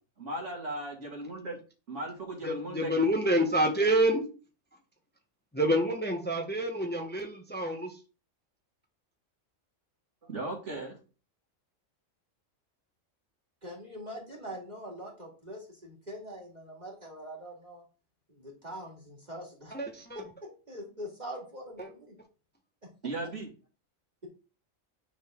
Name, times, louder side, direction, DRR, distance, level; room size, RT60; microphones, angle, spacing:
voice 1, 0.2-1.6 1.9-3.1 10.2-11.0 23.0-23.5, right 2 dB, 65° right, 0 dB, 2.3 m, -37 dB
voice 2, 2.4-4.2 5.5-8.0 19.7-20.2 21.8-21.9, equal, 10° left, 2 dB, 1.0 m, -27 dB
voice 3, 13.6-17.8 18.3-19.7 20.7-22.2, equal, 35° right, -1 dB, 2.1 m, -43 dB
9.2 x 4.0 x 3.6 m, 0.35 s
omnidirectional pair, 1.4 m